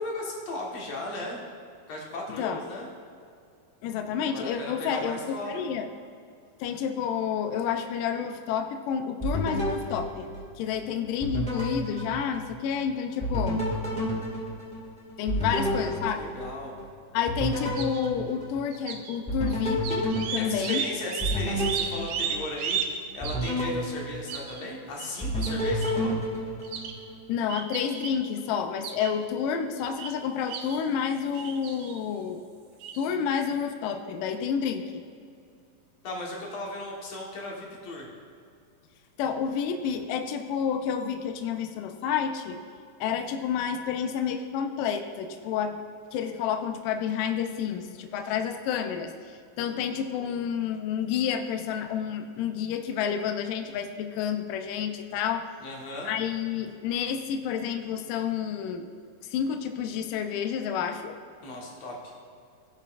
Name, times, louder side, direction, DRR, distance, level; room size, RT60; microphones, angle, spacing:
voice 1, 0.0-1.4 1.9-2.9 4.3-5.5 15.4-16.7 20.4-22.8 23.1-26.2 36.0-38.1 55.6-56.1 61.4-62.1, left 2 dB, 55° left, -2 dB, 2.3 m, -36 dB
voice 2, 2.3-2.6 3.8-5.2 5.5-5.9 6.6-10.3 10.6-13.6 15.2-16.2 17.1-20.8 27.3-32.4 32.9-35.0 39.2-42.6 43.0-45.8 46.1-55.5 56.0-58.9 59.3-61.2, left 7 dB, 80° left, 6 dB, 2.1 m, -29 dB
sound 1, 9.2-10.8 11.2-12.8 13.2-16.9 17.3-18.9 19.3-22.7 23.2-24.8 25.2-27.2, equal, 10° left, 0.3 m, -31 dB
sound 2, 17.8-18.1 18.7-19.2 19.5-19.6 19.8-23.0 23.2-23.6 24.3-24.6 25.0-25.1 25.4-25.9 26.6-26.9 27.5-28.2 28.8-29.1 29.8-30.1 30.5-30.8 31.3-32.0 32.8-33.0, right 7 dB, 85° right, 1.5 m, -34 dB
16.0 x 7.1 x 2.5 m, 2.4 s
omnidirectional pair, 4.0 m